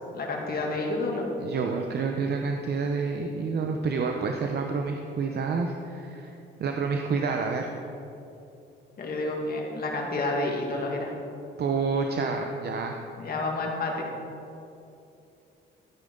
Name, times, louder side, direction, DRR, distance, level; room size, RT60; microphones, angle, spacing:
voice 1, 0.1-1.3 9.0-11.1 13.2-14.1, left 2 dB, 50° left, -1 dB, 2.3 m, -29 dB
voice 2, 1.4-6.3 6.6-7.7 11.6-13.0, right 4 dB, 55° right, 3 dB, 0.8 m, -28 dB
13.0 x 9.1 x 3.9 m, 2.8 s
cardioid pair, 90°, 20 cm